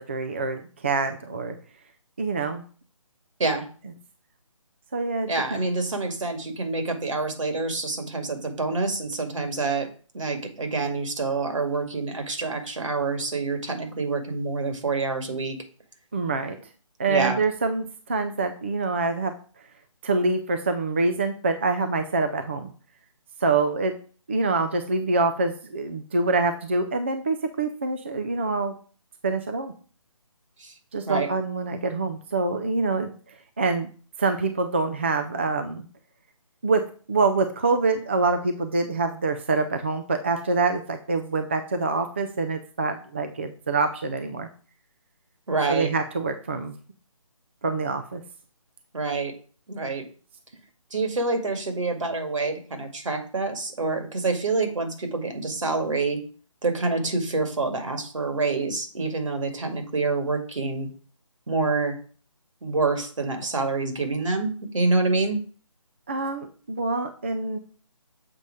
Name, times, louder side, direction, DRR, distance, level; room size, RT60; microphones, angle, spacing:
voice 1, 0.0-1.5 2.2-2.6 4.9-5.6 16.1-16.6 17.0-19.3 20.0-22.7 23.4-23.9 24.3-28.7 29.2-29.7 30.9-33.1 33.6-33.9 34.2-35.8 36.6-36.8 37.1-44.5 45.7-46.7 47.6-48.2 66.1-67.6, right 3 dB, 20° right, 7 dB, 0.4 m, -25 dB
voice 2, 5.3-15.6 17.1-17.4 30.6-30.7 31.1-31.3 45.5-45.9 48.9-49.3 49.7-50.1 50.9-56.2 56.6-60.9 61.5-62.0 62.6-65.4, right 3 dB, 65° right, 5 dB, 2.1 m, -27 dB
6.8 x 4.1 x 4.8 m, 0.42 s
figure-of-eight pair, 160°, 17 cm